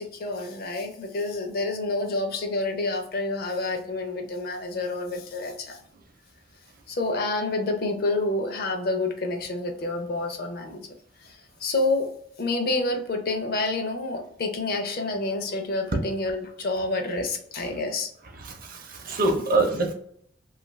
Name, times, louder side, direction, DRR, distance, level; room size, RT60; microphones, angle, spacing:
voice 1, 0.0-5.8 6.9-10.8 11.2-12.1 12.4-18.1, left 2 dB, 50° left, 4 dB, 0.5 m, -28 dB
voice 2, 18.4-19.9, right 2 dB, 50° right, 4 dB, 0.6 m, -25 dB
2.6 x 2.4 x 3.0 m, 0.66 s
head